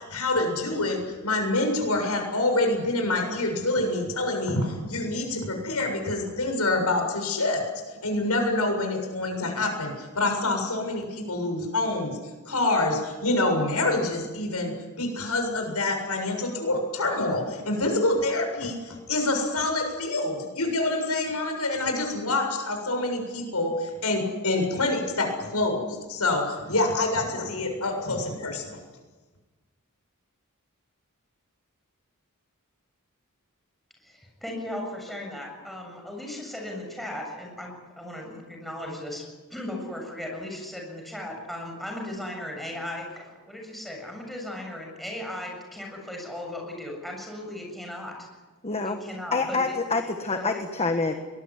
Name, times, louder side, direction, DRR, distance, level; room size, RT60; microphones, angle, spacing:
voice 1, 0.0-12.2 12.5-28.8, left 2 dB, 85° left, 4 dB, 7.3 m, -26 dB
voice 2, 34.0-39.2 39.5-48.1 48.8-49.8 50.1-50.6, left 1 dB, ahead, 0 dB, 7.3 m, -37 dB
voice 3, 48.6-49.0 49.3-51.1, left 3 dB, 30° left, 6 dB, 1.4 m, -26 dB
23.0 x 20.5 x 9.8 m, 1.2 s
head